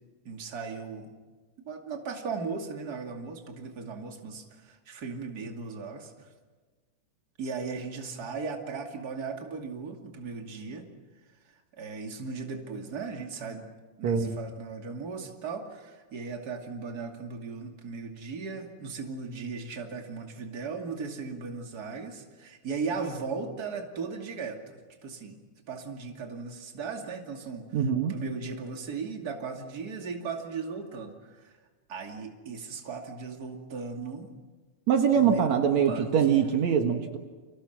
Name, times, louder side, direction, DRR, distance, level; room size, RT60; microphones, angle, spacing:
voice 1, 0.2-1.1 1.7-6.3 7.4-10.9 11.7-13.7 14.0-27.7 28.1-31.6 31.9-34.3 35.1-35.5 35.9-36.4, right 4 dB, 30° right, 3 dB, 2.8 m, -37 dB
voice 2, 14.0-14.4 27.7-28.2 34.9-37.2, right 7 dB, 65° right, 5 dB, 2.7 m, -23 dB
30.0 x 26.5 x 6.0 m, 1.4 s
omnidirectional pair, 3.4 m